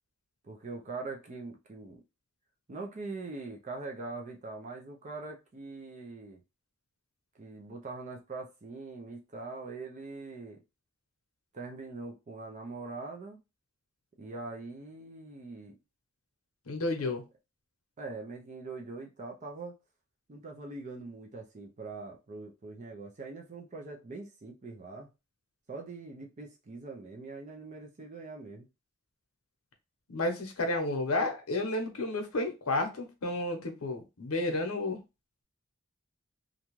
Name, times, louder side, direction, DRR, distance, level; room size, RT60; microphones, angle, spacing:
voice 1, 0.4-2.0 2.7-6.4 7.3-10.6 11.5-13.4 14.2-15.8 17.0-17.1 18.0-19.8 20.3-25.1 25.7-28.7, right 3 dB, 35° right, 0.4 m, -42 dB
voice 2, 16.6-17.2 30.1-35.0, left 2 dB, 75° left, 0.8 m, -31 dB
2.5 x 2.3 x 3.0 m
head